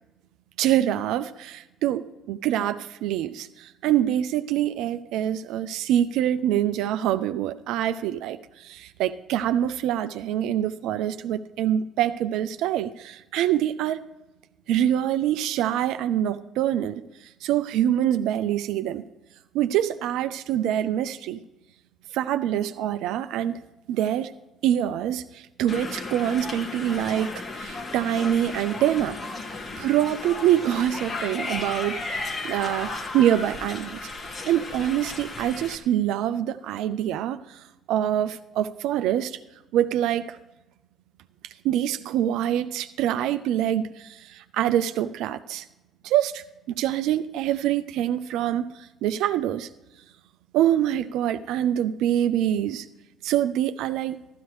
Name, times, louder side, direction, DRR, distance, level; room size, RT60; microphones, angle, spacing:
voice 1, 0.6-14.0 14.7-17.0 17.4-19.0 19.5-21.4 22.1-23.6 23.9-24.3 24.6-29.2 29.8-34.0 34.5-39.4 39.7-40.4 41.6-45.6 46.0-49.7 50.5-52.9 53.2-54.2, right 11 dB, 75° right, 10 dB, 0.4 m, -25 dB
sound 1, 25.7-35.8, left 3 dB, 50° left, 1.8 m, -34 dB
13.5 x 13.0 x 3.1 m, 0.99 s
hypercardioid pair, 55°, 0 cm